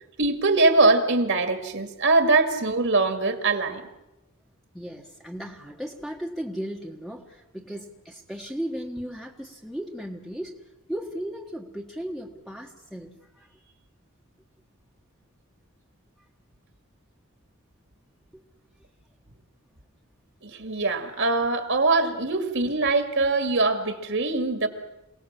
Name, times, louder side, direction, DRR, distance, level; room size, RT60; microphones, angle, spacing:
voice 1, 0.2-3.8 20.4-24.7, right 3 dB, 60° right, 2.3 m, -22 dB
voice 2, 4.7-10.5 10.9-13.6 18.3-18.4, equal, ahead, 1.5 m, -36 dB
27.5 x 18.0 x 7.4 m
head